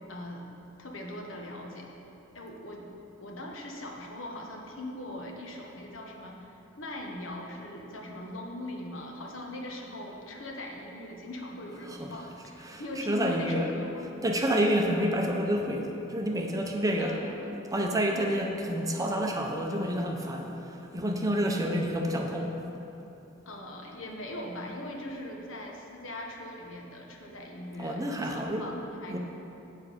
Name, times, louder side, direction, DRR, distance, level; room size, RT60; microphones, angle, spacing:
voice 1, 0.1-0.5 0.8-1.9 2.3-2.9 3.2-14.0 17.0-17.5 18.1-18.4 23.4-29.2, left 1 dB, 70° left, 0 dB, 1.2 m, -40 dB
voice 2, 12.6-13.7 14.2-17.2 17.7-22.5 27.8-28.6 29.1-29.2, equal, 15° right, 2 dB, 0.6 m, -29 dB
8.2 x 7.1 x 5.0 m, 3.0 s
head